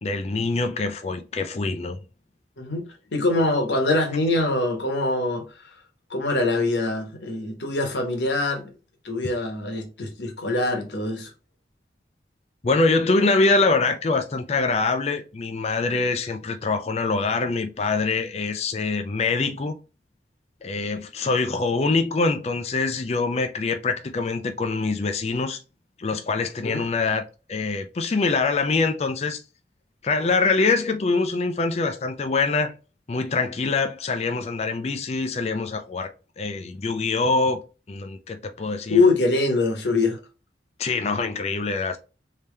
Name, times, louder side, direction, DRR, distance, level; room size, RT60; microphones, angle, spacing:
voice 1, 0.0-2.0 12.6-19.8 20.6-25.6 26.0-29.4 30.0-32.7 33.1-36.1 36.4-37.6 37.9-39.0 40.8-42.0, left 3 dB, 35° left, 0.4 m, -24 dB
voice 2, 3.1-5.4 6.1-8.7 9.0-11.3 26.6-26.8 38.9-40.2, left 2 dB, 80° left, 1.1 m, -23 dB
3.4 x 2.8 x 3.2 m
head